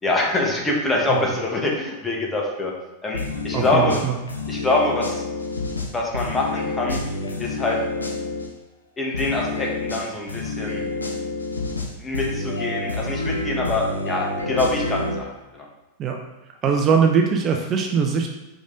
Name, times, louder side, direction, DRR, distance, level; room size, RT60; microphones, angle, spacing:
voice 1, 0.0-2.7 3.0-4.0 4.5-5.2 5.9-7.0 7.4-7.8 9.0-10.8 12.0-15.3 15.5-15.7, left 2 dB, 15° left, -1 dB, 1.5 m, -24 dB
sound 1, 3.1-8.5 9.1-15.1, left 3 dB, 85° left, 0.8 m, -28 dB
voice 2, 3.5-4.2 16.0-16.2 16.6-18.3, right 6 dB, 30° right, 3 dB, 0.6 m, -21 dB
5.1 x 5.0 x 3.9 m, 1.1 s
figure-of-eight pair, 90°, 0 cm